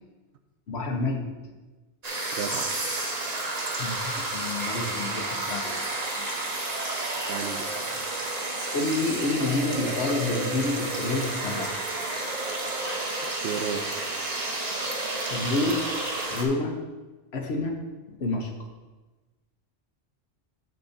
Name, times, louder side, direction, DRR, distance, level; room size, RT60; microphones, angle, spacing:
voice 1, 0.7-1.5 3.8-5.8 6.1-6.2 8.7-11.8 15.2-15.9 16.3-16.8 17.3-17.8 18.1-18.5, left 2 dB, 70° left, 3 dB, 1.3 m, -29 dB
sound 1, 2.0-16.5, right 2 dB, 40° right, 1.1 m, -31 dB
voice 2, 2.3-2.7 7.3-7.7 13.3-14.1, right 7 dB, 75° right, 8 dB, 0.9 m, -33 dB
10.0 x 6.9 x 2.7 m, 1.2 s
omnidirectional pair, 1.1 m